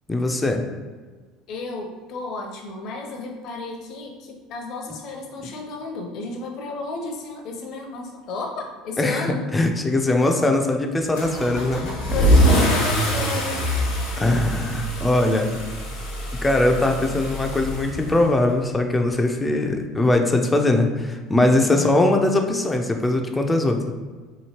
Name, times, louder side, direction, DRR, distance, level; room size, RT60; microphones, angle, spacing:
voice 1, 0.1-0.6 9.0-9.2 9.5-11.9 14.2-15.6 16.4-23.9, left 2 dB, 15° left, 3 dB, 0.4 m, -21 dB
voice 2, 1.5-9.7 10.1-10.3 12.1-13.6 21.7-21.9, left 3 dB, 60° left, 2 dB, 0.6 m, -32 dB
Car / Engine starting / Accelerating revving vroom, 11.1-18.5, equal, 85° left, 1.0 m, -23 dB
2.9 x 2.6 x 2.9 m, 1.4 s
supercardioid pair, 95°, 0 cm